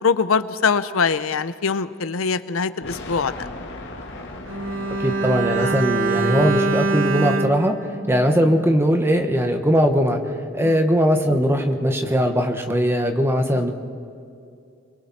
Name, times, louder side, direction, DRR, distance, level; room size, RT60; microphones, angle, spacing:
voice 1, 0.0-3.5 5.6-5.7 10.6-10.8 13.5-13.7, left 5 dB, 85° left, 14 dB, 0.7 m, -23 dB
sound 1, 2.8-7.7, left 2 dB, 60° left, 2.0 m, -38 dB
Bowed string instrument, 4.5-8.9 9.2-9.3, right 3 dB, 80° right, 1.4 m, -24 dB
voice 2, 5.0-7.8 8.1-10.2 10.5-13.7, equal, 10° right, 5 dB, 1.4 m, -20 dB
29.5 x 22.5 x 4.3 m, 2.5 s
head